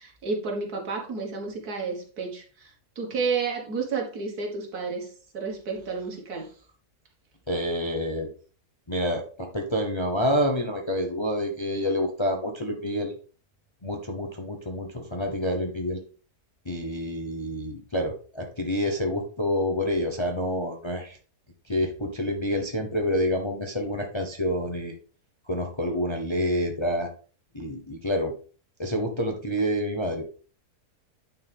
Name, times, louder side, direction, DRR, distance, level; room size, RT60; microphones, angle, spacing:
voice 1, 0.0-6.5, right 4 dB, 70° right, 0 dB, 2.2 m, -31 dB
voice 2, 7.5-8.3 8.9-13.1 13.8-16.0 16.7-21.2 21.7-24.9 25.5-27.1 27.5-28.3 28.8-30.2, equal, 25° left, 3 dB, 0.7 m, -28 dB
9.4 x 4.6 x 3.5 m, 0.38 s
omnidirectional pair, 1.7 m